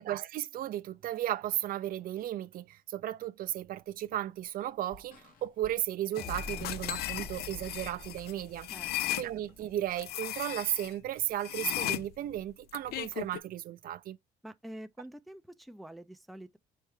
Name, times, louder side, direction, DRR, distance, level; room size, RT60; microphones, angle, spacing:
voice 1, 0.0-8.7 9.2-14.2, right 12 dB, 60° right, 0.5 m, -35 dB
sound 1, 3.4-10.1, left 1 dB, 55° left, 1.2 m, -59 dB
sound 2, 6.2-9.3 10.0-10.9 11.4-13.4, left 14 dB, 70° left, 0.4 m, -36 dB
sound 3, 6.2-9.8, left 2 dB, 40° left, 1.7 m, -45 dB
voice 2, 8.7-9.2 14.4-16.6, right 1 dB, ahead, 0.4 m, -47 dB
4.7 x 3.2 x 3.1 m
cardioid pair, 110°, 17 cm